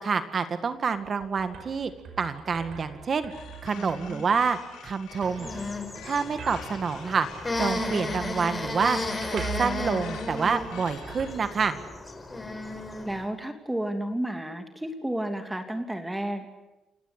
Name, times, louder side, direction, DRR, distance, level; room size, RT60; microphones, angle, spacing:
voice 1, 0.0-1.9 2.2-3.3 3.6-4.6 4.8-5.5 6.0-7.3 7.6-9.0 9.3-11.8, right 5 dB, 45° right, 10 dB, 1.9 m, -27 dB
sound 1, 0.7-12.2, right 6 dB, 65° right, 5.4 m, -43 dB
sound 2, 3.3-11.4, left 7 dB, 90° left, 4.7 m, -47 dB
voice 2, 3.7-4.3 13.1-16.4, right 1 dB, 10° right, 6 dB, 3.0 m, -32 dB
sound 3, 5.2-13.2, left 2 dB, 25° left, 5.0 m, -34 dB
29.5 x 17.5 x 9.7 m, 1.1 s
cardioid pair, 90°, 0 cm